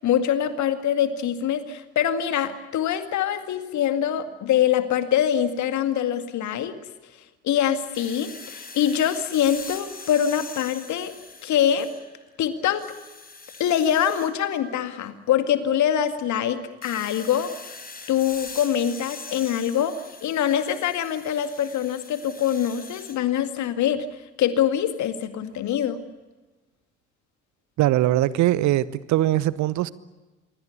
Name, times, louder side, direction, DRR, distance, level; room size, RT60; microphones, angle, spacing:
voice 1, 0.0-6.8 7.4-11.1 11.4-11.9 12.4-12.8 13.6-17.5 18.1-24.1 24.4-26.0, left 9 dB, 55° left, 2.1 m, -24 dB
sound 1, 7.9-12.2 12.6-14.3 16.8-23.2, left 4 dB, 25° left, 4.8 m, -42 dB
voice 2, 27.8-29.9, right 14 dB, 55° right, 1.0 m, -21 dB
27.0 x 23.0 x 8.3 m
figure-of-eight pair, 45°, 35 cm